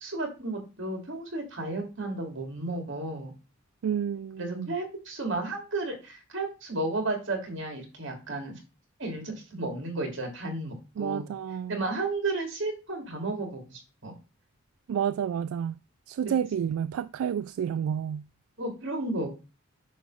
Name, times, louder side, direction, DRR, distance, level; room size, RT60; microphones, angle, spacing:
voice 1, 0.0-3.3 4.4-8.5 9.0-11.3 11.7-14.1 16.2-16.3 18.6-19.3, right 2 dB, 60° right, 2.6 m, -33 dB
voice 2, 3.8-4.7 11.0-11.8 14.9-15.8 16.1-18.3, right 8 dB, 85° right, 0.3 m, -30 dB
9.1 x 3.1 x 6.1 m
head